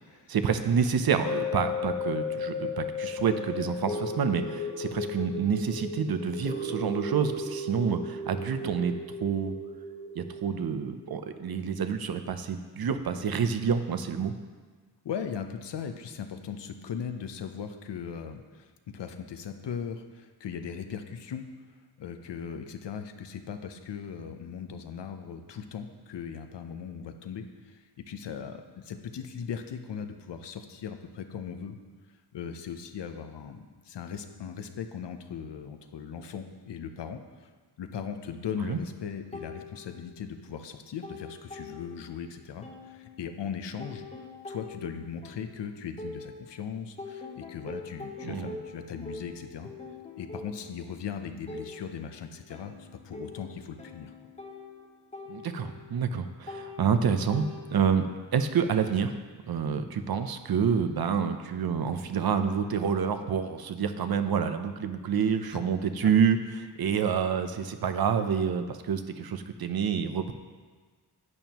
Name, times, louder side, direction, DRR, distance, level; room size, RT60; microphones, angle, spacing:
voice 1, 0.3-8.9 9.2-9.6 10.1-14.3 38.7-38.8 48.2-48.6 55.3-59.1 59.5-70.3, right 7 dB, 60° right, 9 dB, 0.7 m, -28 dB
sound 1, 1.3-11.6 12.1-12.2, left 3 dB, 35° left, 1.3 m, -35 dB
voice 2, 15.0-21.4 22.0-31.8 32.3-37.5 37.8-44.1 44.5-49.7 50.2-54.1 65.5-65.6 66.0-66.1, left 7 dB, 80° left, 7 dB, 0.8 m, -38 dB
sound 2, 39.3-40.4 40.7-42.3 42.6-46.6 47.0-58.0, left 3 dB, 15° left, 0.9 m, -44 dB
11.0 x 9.1 x 3.0 m, 1.5 s
wide cardioid pair, 140°, 41 cm